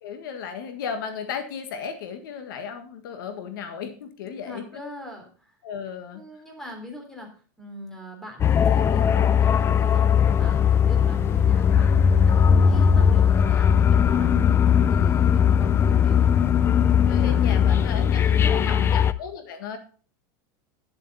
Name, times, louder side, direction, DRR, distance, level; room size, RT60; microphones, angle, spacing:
voice 1, 0.0-4.6 5.6-6.2 17.1-18.2 18.7-19.8, left 7 dB, 75° left, 7 dB, 1.6 m, -35 dB
voice 2, 4.4-5.3 6.1-7.3 7.6-16.4 17.1-18.9, left 1 dB, 5° left, 1 dB, 3.5 m, -40 dB
sound 1, 8.4-19.1, left 8 dB, 20° left, 0.5 m, -19 dB
10.5 x 7.4 x 4.1 m, 0.39 s
supercardioid pair, 130°, 11 cm